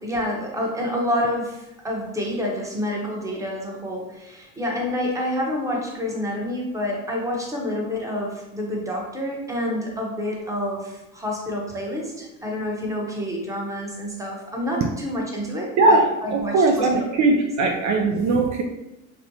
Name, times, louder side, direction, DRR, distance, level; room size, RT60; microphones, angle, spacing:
voice 1, 0.0-17.4, left 1 dB, 10° right, -1 dB, 0.8 m, -28 dB
voice 2, 15.8-18.6, right 2 dB, 50° right, 2 dB, 0.5 m, -19 dB
4.2 x 2.1 x 2.7 m, 0.95 s
supercardioid pair, 95°, 36 cm